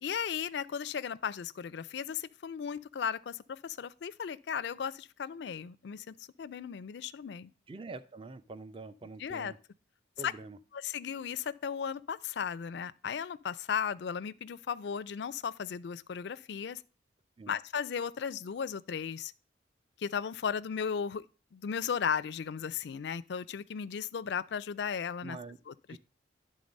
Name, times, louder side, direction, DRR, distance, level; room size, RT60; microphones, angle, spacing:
voice 1, 0.0-7.5 9.2-9.5 10.2-10.3 10.7-16.8 17.5-19.3 20.0-21.2 21.5-25.4 25.7-26.0, left 7 dB, 65° left, 0.4 m, -36 dB
voice 2, 7.7-9.6 10.2-10.6 17.4-17.6 25.2-25.6 25.9-26.0, right 3 dB, 25° right, 0.4 m, -45 dB
11.0 x 3.8 x 5.2 m
head